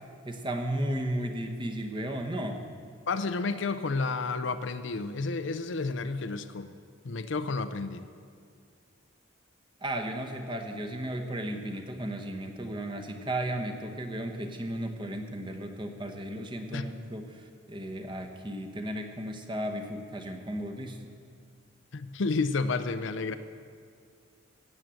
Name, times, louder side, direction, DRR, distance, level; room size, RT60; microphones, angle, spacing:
voice 1, 0.2-2.6 9.8-21.0, right 1 dB, 25° right, 4 dB, 1.0 m, -34 dB
voice 2, 3.1-6.7 7.0-8.0 16.7-16.9 21.9-23.4, left 3 dB, 60° left, 11 dB, 0.5 m, -31 dB
17.0 x 7.5 x 7.7 m, 2.2 s
head